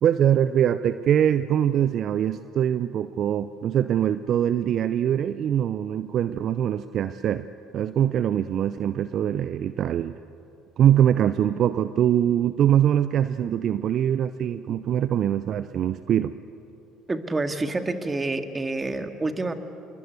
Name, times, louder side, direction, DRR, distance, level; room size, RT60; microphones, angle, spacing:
voice 1, 0.0-7.5 7.7-10.2 10.8-16.3, right 10 dB, 55° right, 13 dB, 0.6 m, -23 dB
voice 2, 17.1-19.5, right 2 dB, 20° right, 7 dB, 2.0 m, -28 dB
26.5 x 22.5 x 8.2 m, 2.9 s
hypercardioid pair, 65°, 0 cm